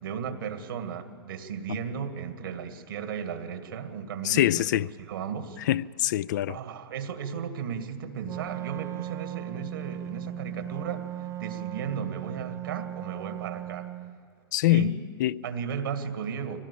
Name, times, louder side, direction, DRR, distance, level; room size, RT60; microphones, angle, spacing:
voice 1, 0.0-5.6 6.5-13.9 14.7-15.0 15.4-16.6, right 7 dB, 65° right, 2.1 m, -35 dB
voice 2, 4.2-4.9 5.7-6.6 14.5-15.4, left 14 dB, 55° left, 0.4 m, -24 dB
Wind instrument woodwind instrument, 8.2-14.2, right 12 dB, 25° right, 0.4 m, -37 dB
23.5 x 18.0 x 8.5 m
hypercardioid pair, 115°, 12 cm